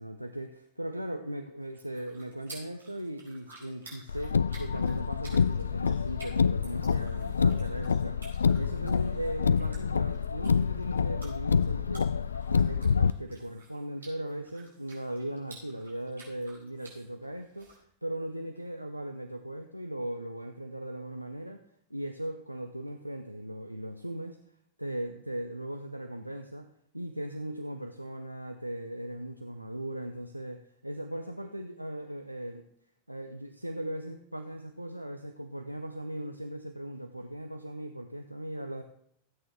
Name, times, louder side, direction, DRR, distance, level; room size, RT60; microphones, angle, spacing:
voice 1, 0.0-8.2 8.6-12.1 12.5-21.6 21.9-24.4 24.8-26.7 26.9-32.7 33.1-38.8, right 1 dB, 90° right, 6 dB, 0.6 m, -38 dB
sound 1, 1.6-17.8, right 3 dB, 75° right, 4.4 m, -54 dB
Car, 4.1-13.1, left 6 dB, 75° left, 0.3 m, -27 dB
15.5 x 8.7 x 3.3 m, 0.71 s
figure-of-eight pair, 90°, 0 cm